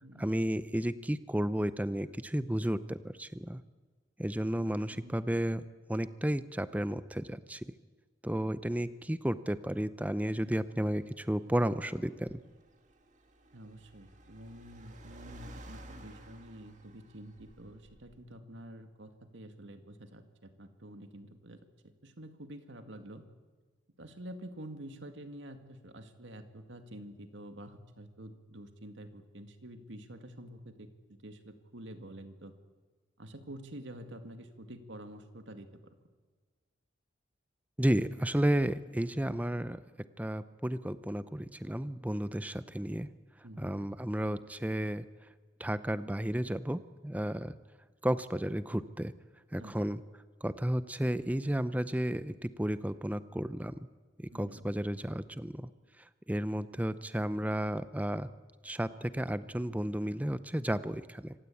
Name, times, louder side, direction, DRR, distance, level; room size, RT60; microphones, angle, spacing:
voice 1, 0.2-3.6 4.2-5.6 5.9-7.7 8.2-12.4 37.8-39.8 40.2-43.1 43.6-45.0 45.6-47.6 48.0-49.1 49.5-50.0 50.4-53.8 54.2-55.7 56.0-58.3 58.6-61.3, right 1 dB, 10° right, 14 dB, 0.6 m, -32 dB
voice 2, 4.9-5.3 13.5-21.6 22.0-23.3 24.0-32.5 33.2-36.0 43.4-43.9 49.6-49.7 54.3-54.8, right 1 dB, 85° right, 7 dB, 2.1 m, -48 dB
Car, 10.6-18.4, right 1 dB, 40° right, 2.2 m, -54 dB
26.0 x 16.5 x 8.5 m, 1.4 s
head